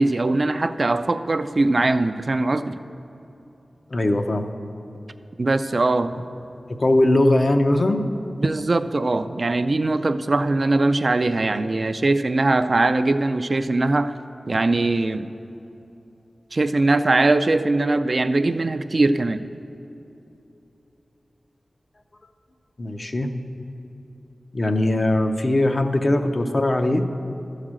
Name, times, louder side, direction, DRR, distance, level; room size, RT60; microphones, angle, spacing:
voice 1, 0.0-2.8 5.4-6.1 8.4-14.1 14.5-15.3 16.5-19.5, right 2 dB, 50° right, 11 dB, 0.3 m, -21 dB
voice 2, 3.9-4.4 6.7-8.0 22.8-23.3 24.5-27.1, left 1 dB, 50° left, 6 dB, 0.6 m, -20 dB
12.0 x 4.9 x 7.5 m, 2.9 s
wide cardioid pair, 60°, 0 cm